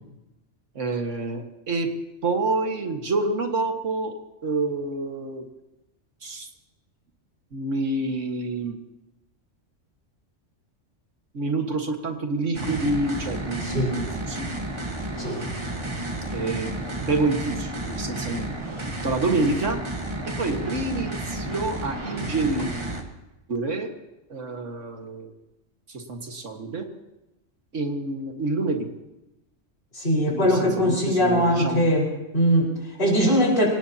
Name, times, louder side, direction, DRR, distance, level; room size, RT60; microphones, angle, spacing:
voice 1, 0.8-1.9 2.2-4.1 4.4-5.4 6.2-6.5 7.5-8.8 11.3-14.5 16.3-18.5 18.9-19.8 20.2-22.7 23.5-23.9 24.3-25.3 25.9-26.9 27.7-28.9 30.3-31.8, right 3 dB, 80° right, 4 dB, 2.0 m, -27 dB
sound 1, 12.5-23.0, right 1 dB, 25° right, 1.5 m, -32 dB
voice 2, 13.6-14.0 15.2-15.4 29.9-32.1 32.3-33.7, equal, 55° left, -2 dB, 5.0 m, -21 dB
26.0 x 18.0 x 2.9 m, 0.97 s
omnidirectional pair, 1.3 m